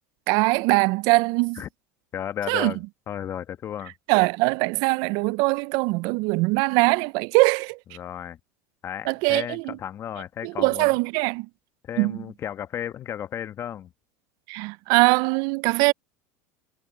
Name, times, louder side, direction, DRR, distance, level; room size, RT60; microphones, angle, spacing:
voice 1, 0.3-1.6 2.5-2.7 4.1-7.8 9.1-9.7 10.4-11.5 12.0-12.2 14.5-15.9, right 25 dB, 60° right, 0.4 m, -22 dB
voice 2, 2.1-3.9 7.9-8.4 8.8-10.9 11.8-13.9, left 10 dB, 35° left, 1.1 m, -34 dB
supercardioid pair, 120°, 8 cm